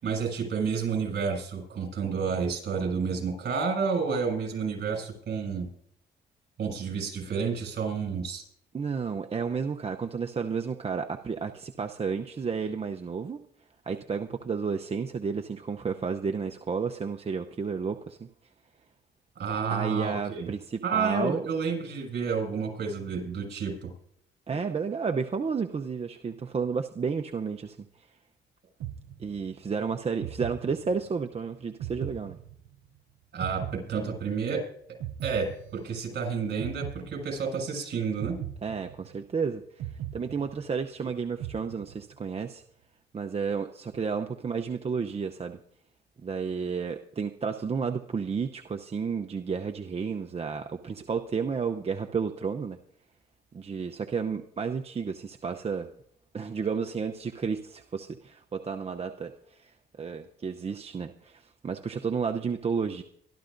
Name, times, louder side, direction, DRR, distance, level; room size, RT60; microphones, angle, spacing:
voice 1, 0.0-5.7 6.6-8.4 19.3-20.5 20.8-23.9 33.3-34.6 35.2-38.4, right 5 dB, 55° right, 3 dB, 6.7 m, -30 dB
voice 2, 8.7-13.4 13.8-18.3 19.7-21.4 24.5-28.1 29.2-32.4 38.6-42.6 43.1-45.6 46.2-52.8 53.5-55.9 56.3-63.0, right 5 dB, 30° right, 5 dB, 0.7 m, -32 dB
sound 1, 28.8-29.7 30.2-31.3 31.8-33.0 33.4-34.6 35.0-36.2 36.6-37.7 38.2-39.4 39.8-41.0 41.4-42.3, right 10 dB, 85° right, 0.6 m, -39 dB
24.0 x 12.5 x 2.6 m, 0.67 s
cardioid pair, 90°, 20 cm